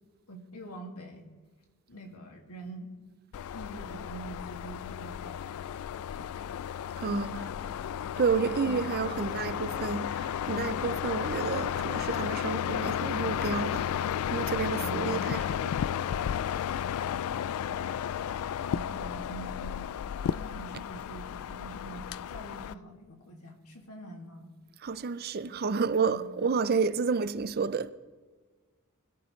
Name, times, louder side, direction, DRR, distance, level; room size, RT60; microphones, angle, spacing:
voice 1, 0.3-1.3 1.9-2.9 3.5-5.5 6.2-6.5 7.0-7.5 8.3-8.6 9.0-9.5 14.7-15.1 17.3-17.9 18.7-19.9 20.3-24.5 26.0-26.2, right 1 dB, 90° left, 2.3 m, -45 dB
sound 1, 3.3-22.7, left 9 dB, 70° left, 0.3 m, -33 dB
voice 2, 7.0-7.3 8.2-13.9 14.3-15.7 24.8-27.9, right 5 dB, 45° right, 0.5 m, -30 dB
21.5 x 14.0 x 3.2 m
head